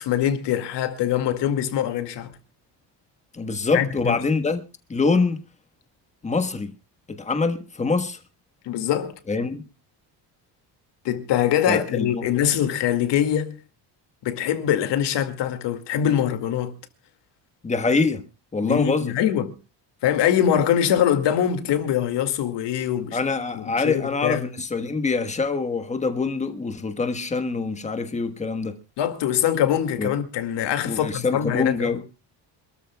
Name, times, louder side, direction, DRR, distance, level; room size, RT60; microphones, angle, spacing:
voice 1, 0.0-2.3 3.7-4.2 8.7-9.2 11.0-13.6 14.2-16.7 18.6-19.5 20.0-23.2 23.5-24.4 29.0-31.7, left 10 dB, 70° left, 2.2 m, -23 dB
voice 2, 3.3-4.6 4.9-5.4 6.2-6.7 7.1-8.2 9.3-9.6 11.7-12.3 17.6-18.2 18.5-19.1 23.1-28.8 30.0-30.1 30.9-32.0, left 4 dB, 15° left, 1.3 m, -24 dB
26.5 x 13.5 x 2.3 m
cardioid pair, 170°, 44 cm